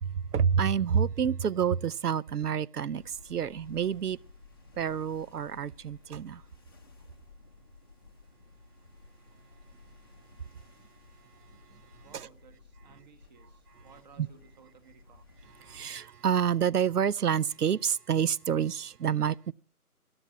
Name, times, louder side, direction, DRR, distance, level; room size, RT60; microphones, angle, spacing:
voice 1, 0.0-4.2 4.8-6.4 14.2-14.3 15.6-19.5, right 8 dB, 80° right, 0.7 m, -28 dB
sound 1, 3.0-15.9, left 3 dB, 15° left, 0.7 m, -55 dB
voice 2, 12.0-15.2, right 6 dB, 30° right, 1.4 m, -57 dB
13.5 x 12.0 x 5.8 m
figure-of-eight pair, 150°, 46 cm